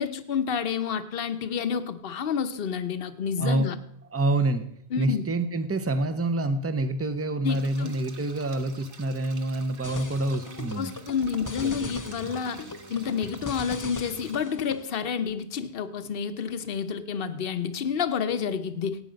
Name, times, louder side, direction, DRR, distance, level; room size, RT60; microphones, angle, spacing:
voice 1, 0.0-3.8 4.9-5.2 7.4-8.0 10.8-12.6 12.9-19.0, left 7 dB, 60° left, 1.0 m, -29 dB
voice 2, 4.1-4.7 5.0-10.9 11.6-11.9 12.2-12.3, right 2 dB, 15° right, 0.7 m, -27 dB
sound 1, 7.4-14.3, right 4 dB, 55° right, 1.4 m, -50 dB
sound 2, 9.8-14.9, left 3 dB, 20° left, 0.6 m, -39 dB
17.5 x 9.0 x 5.2 m
omnidirectional pair, 1.1 m